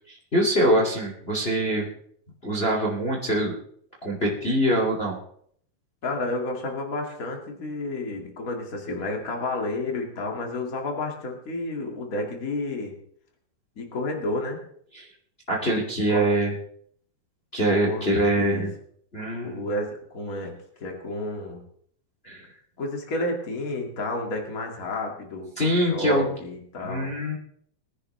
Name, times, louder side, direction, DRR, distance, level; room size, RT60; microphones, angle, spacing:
voice 1, 0.0-1.9 2.4-3.5 4.0-5.2 14.9-15.0 15.5-16.5 17.5-18.7 19.1-19.7 22.2-22.4 25.6-26.3 26.8-27.3, right 1 dB, 25° left, -2 dB, 1.4 m, -24 dB
voice 2, 6.0-12.9 13.7-14.6 16.1-16.3 17.8-18.0 18.4-18.7 19.4-20.5 20.8-21.6 22.8-27.1, left 2 dB, 50° left, 1 dB, 1.0 m, -31 dB
22.0 x 10.5 x 3.3 m, 0.64 s
omnidirectional pair, 5.5 m